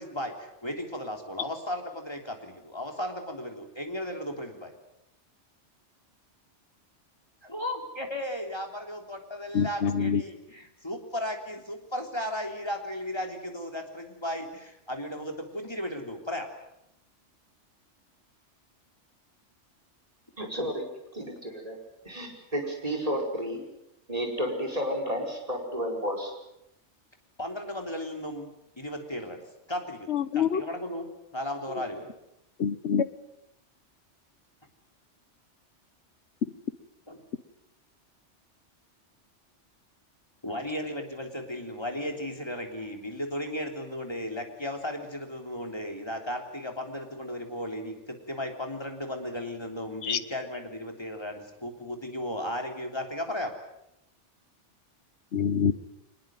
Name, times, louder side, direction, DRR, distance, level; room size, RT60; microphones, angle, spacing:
voice 1, 0.0-4.7 7.4-16.5 27.4-29.4 29.7-31.1 31.3-32.1 37.1-37.2 40.4-53.5, left 1 dB, 20° left, 4 dB, 3.5 m, -35 dB
voice 2, 9.5-10.2 30.1-30.6 31.7-31.8 32.6-33.1 50.0-50.2 55.3-55.7, left 7 dB, 70° left, 13 dB, 1.4 m, -26 dB
voice 3, 20.4-20.8 21.1-21.8 22.0-23.6 24.1-26.3, equal, 30° right, 2 dB, 5.1 m, -31 dB
24.0 x 20.5 x 9.1 m, 0.82 s
omnidirectional pair, 1.2 m